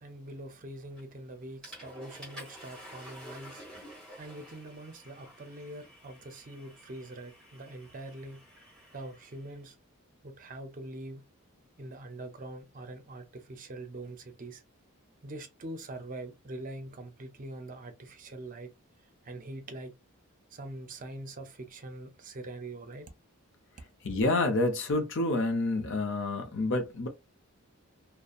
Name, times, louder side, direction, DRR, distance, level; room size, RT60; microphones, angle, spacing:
voice 1, 0.0-3.7 4.2-8.4 8.9-9.7 10.2-11.2 11.8-14.6 15.2-18.7 19.2-19.9 20.5-23.1, right 2 dB, 40° right, 0.5 m, -43 dB
Water / Toilet flush, 1.0-1.2 1.6-9.5, equal, 5° left, 1.3 m, -50 dB
voice 2, 24.0-27.1, left 2 dB, 60° left, 0.7 m, -28 dB
2.7 x 2.0 x 2.4 m
head